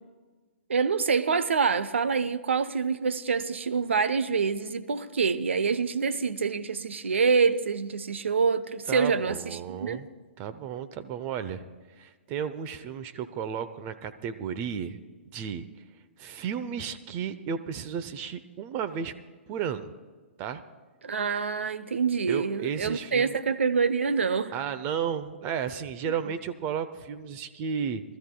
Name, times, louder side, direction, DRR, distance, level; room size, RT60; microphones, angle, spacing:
voice 1, 0.7-10.0 21.0-24.5, right 5 dB, 75° right, 0.7 m, -26 dB
voice 2, 8.9-10.1 10.4-11.7 12.0-15.0 15.3-15.7 16.2-19.1 19.5-19.9 20.4-20.6 22.3-23.4 24.5-28.0, right 7 dB, 35° right, 0.7 m, -33 dB
24.5 x 13.5 x 2.3 m
hypercardioid pair, 120°, 6 cm